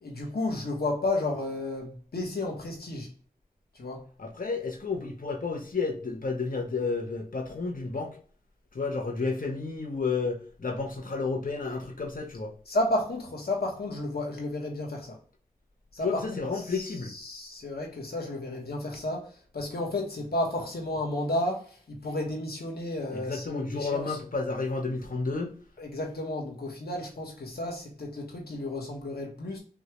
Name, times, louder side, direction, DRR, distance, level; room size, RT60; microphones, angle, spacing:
voice 1, 0.0-3.1 3.7-4.0 12.7-15.2 15.9-24.2 25.8-29.6, left 1 dB, 80° left, 1.5 m, -32 dB
voice 2, 4.2-8.2 8.7-12.5 16.0-17.1 23.1-25.5, left 4 dB, 60° left, 1.2 m, -31 dB
5.6 x 2.7 x 3.0 m
wide cardioid pair, 65°, 16 cm